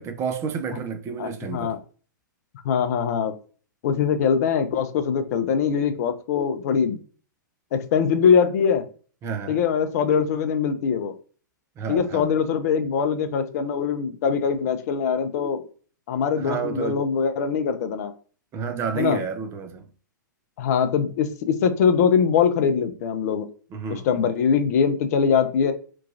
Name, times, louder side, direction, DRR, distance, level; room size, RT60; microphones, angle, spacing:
voice 1, 0.0-1.8 9.2-9.6 11.8-12.4 16.4-17.0 18.5-19.9 23.7-24.1, right 6 dB, 25° right, 0.4 m, -30 dB
voice 2, 1.2-1.8 2.6-3.3 3.8-7.0 7.7-8.9 9.5-11.1 11.9-15.6 16.1-18.1 18.9-19.2 20.6-23.5 23.9-25.7, left 6 dB, 50° left, 0.4 m, -22 dB
3.0 x 2.3 x 2.4 m
figure-of-eight pair, 110°, 11 cm